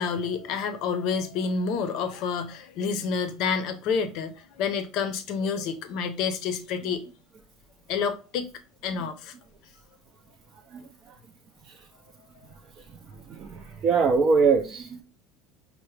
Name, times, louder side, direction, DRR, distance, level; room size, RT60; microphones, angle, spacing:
voice 1, 0.0-7.0 7.9-8.5 8.8-9.3, left 5 dB, 55° left, 0.6 m, -29 dB
voice 2, 13.3-15.0, right 5 dB, 35° right, 0.5 m, -23 dB
5.6 x 2.1 x 3.2 m
cardioid pair, 150°, 0 cm